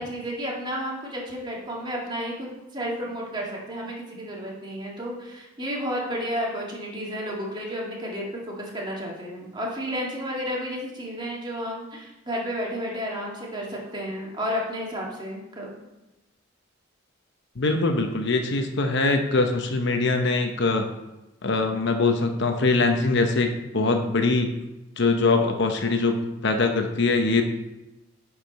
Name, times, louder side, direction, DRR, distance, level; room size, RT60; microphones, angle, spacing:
voice 1, 0.0-2.5 2.7-8.3 8.6-15.7 23.7-24.1, equal, 25° right, -3 dB, 2.2 m, -32 dB
voice 2, 17.6-20.9 21.4-24.5 25.0-27.4, left 3 dB, 65° left, 5 dB, 0.9 m, -23 dB
10.0 x 4.9 x 5.2 m, 0.99 s
head